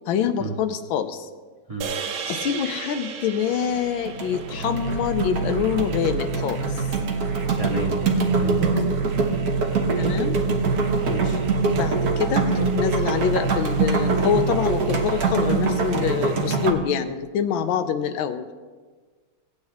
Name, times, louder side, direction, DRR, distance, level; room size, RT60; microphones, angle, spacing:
voice 1, 0.1-1.3 2.3-6.9 10.0-10.4 11.7-18.5, left 8 dB, 80° left, 9 dB, 1.4 m, -25 dB
sound 1, 1.8-6.2, right 6 dB, 75° right, 1.6 m, -35 dB
sound 2, 3.5-3.8 4.1-16.7, right 4 dB, 55° right, 1.3 m, -23 dB
voice 2, 7.6-8.0 8.3-8.8 11.1-11.4, right 2 dB, 20° right, -1 dB, 1.4 m, -31 dB
18.0 x 8.0 x 3.5 m, 1.5 s
omnidirectional pair, 2.2 m